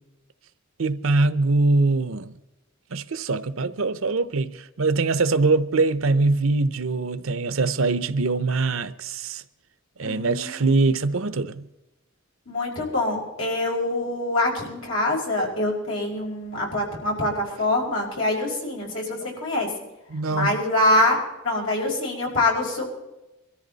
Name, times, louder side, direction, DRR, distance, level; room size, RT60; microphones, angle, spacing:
voice 1, 0.8-2.3 2.9-9.4 10.0-11.6 20.1-20.5, right 3 dB, 85° right, 0.8 m, -23 dB
voice 2, 10.0-10.7 12.5-19.7 20.3-21.2 21.4-22.9, left 2 dB, 75° left, 5.5 m, -25 dB
22.5 x 14.0 x 4.1 m
head